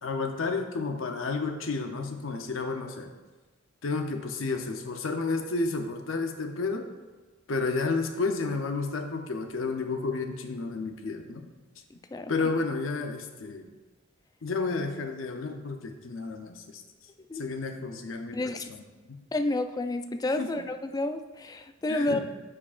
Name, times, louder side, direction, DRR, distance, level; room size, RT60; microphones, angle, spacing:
voice 1, 0.0-3.1 3.8-6.8 7.5-11.5 12.3-13.7 14.4-16.8 17.3-18.4 19.1-19.2 20.4-20.6 21.9-22.2, left 3 dB, 85° left, 5 dB, 0.6 m, -31 dB
voice 2, 11.9-12.3 17.3-17.4 18.3-18.7 19.3-22.2, left 2 dB, 20° left, 8 dB, 0.3 m, -30 dB
9.7 x 4.9 x 2.4 m, 1.2 s
head